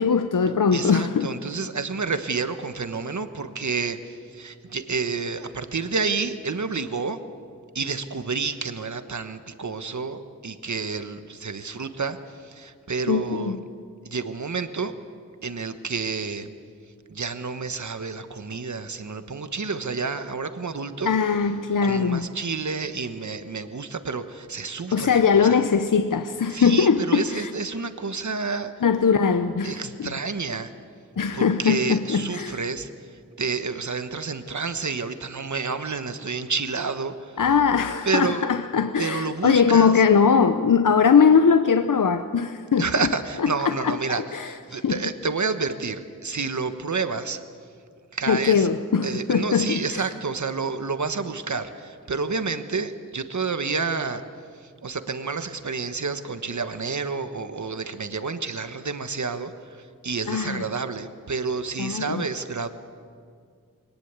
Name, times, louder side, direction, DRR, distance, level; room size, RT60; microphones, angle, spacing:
voice 1, 0.0-1.3 13.1-13.6 21.1-22.3 24.9-27.5 28.8-30.1 31.2-32.6 37.4-42.9 43.6-44.5 44.8-45.0 48.3-50.0 60.3-60.6 61.8-62.2, left 6 dB, 65° left, 0.8 m, -21 dB
voice 2, 0.7-7.2 7.7-13.6 14.0-14.9 15.4-16.5 17.1-21.1 21.8-25.6 26.5-28.7 29.6-30.7 31.3-37.4 38.0-38.5 39.0-40.0 42.8-47.4 48.1-48.7 49.0-54.2 54.5-62.7, right 4 dB, 55° right, 1.3 m, -29 dB
21.5 x 19.0 x 8.3 m
wide cardioid pair, 55°, 35 cm